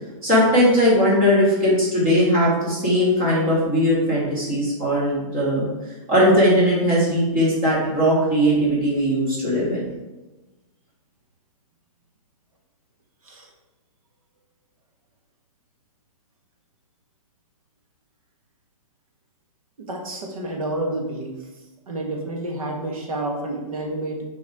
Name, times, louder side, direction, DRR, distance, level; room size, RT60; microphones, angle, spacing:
voice 1, 0.2-5.7 6.1-9.8, equal, 25° right, -7 dB, 2.3 m, -19 dB
voice 2, 19.9-21.4 21.9-24.2, right 1 dB, 70° right, 1 dB, 1.6 m, -29 dB
6.7 x 4.7 x 3.7 m, 1.1 s
hypercardioid pair, 180°, 18 cm